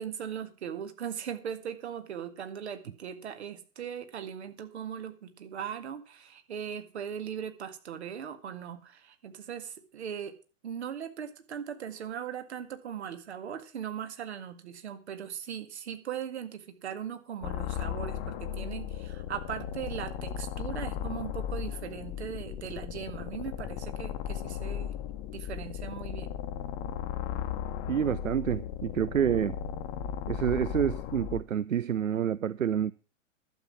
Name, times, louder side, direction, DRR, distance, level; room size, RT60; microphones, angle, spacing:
voice 1, 0.0-10.3 10.6-24.9 25.3-26.3, right 8 dB, 55° right, 2.0 m, -39 dB
sound 1, 17.4-31.4, left 10 dB, 30° left, 1.1 m, -36 dB
voice 2, 27.9-29.6 30.3-32.9, right 9 dB, 80° right, 0.6 m, -28 dB
11.5 x 7.9 x 7.1 m
figure-of-eight pair, 105°, 39 cm